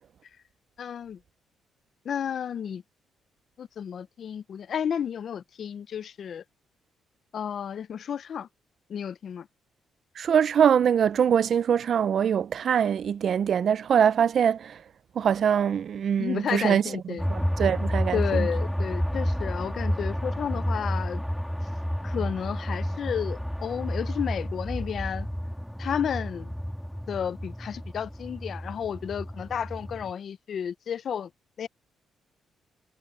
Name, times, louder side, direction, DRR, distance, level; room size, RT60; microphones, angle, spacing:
voice 1, 0.8-1.2 2.0-2.8 3.6-6.4 7.3-8.5 8.9-9.5 16.2-17.3 18.1-21.2 22.0-25.3 25.8-26.5 27.1-31.3 31.6-31.7, left 8 dB, 55° left, 0.6 m, -32 dB
voice 2, 10.2-14.8 15.2-17.0 17.3-18.5, right 8 dB, 55° right, 0.5 m, -23 dB
sound 1, 17.2-30.1, equal, ahead, 2.8 m, -30 dB
cardioid pair, 90°, 0 cm